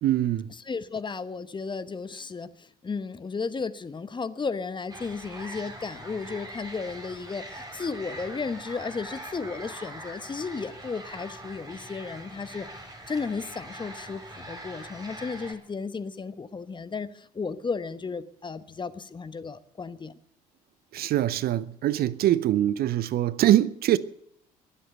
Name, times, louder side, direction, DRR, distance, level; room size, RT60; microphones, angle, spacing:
voice 1, 0.0-0.5 20.9-24.0, right 13 dB, 50° right, 0.7 m, -23 dB
voice 2, 0.6-12.7 13.1-20.1, left 4 dB, 25° left, 1.0 m, -34 dB
sound 1, 4.9-15.5, right 1 dB, 20° right, 4.6 m, -42 dB
21.5 x 7.9 x 7.9 m
figure-of-eight pair, 55°, 20 cm